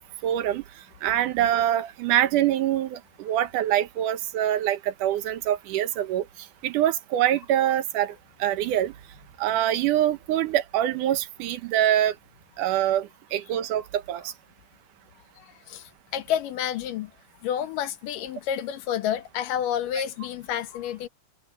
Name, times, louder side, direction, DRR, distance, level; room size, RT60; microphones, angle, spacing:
voice 1, 0.2-0.6 1.0-6.3 6.6-8.1 8.4-8.9 9.4-12.1 12.6-14.3, right 12 dB, 75° right, 2.5 m, -24 dB
voice 2, 15.4-17.1 17.4-21.1, left 10 dB, 80° left, 2.8 m, -30 dB
omnidirectional pair, 3.8 m